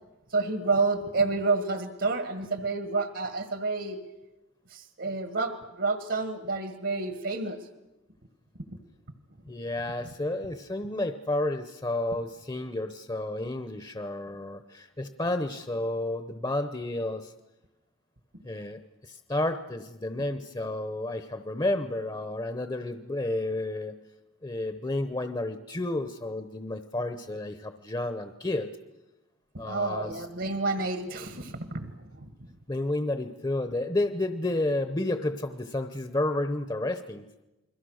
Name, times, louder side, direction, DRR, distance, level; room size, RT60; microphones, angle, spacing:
voice 1, 0.3-4.0 4.7-7.6 29.7-32.3, right 3 dB, 65° right, 9 dB, 1.6 m, -29 dB
voice 2, 9.4-17.3 18.4-23.9 24.4-28.7 29.6-30.2 32.7-37.2, left 2 dB, 20° left, 9 dB, 0.8 m, -31 dB
29.0 x 22.0 x 6.4 m, 1.0 s
head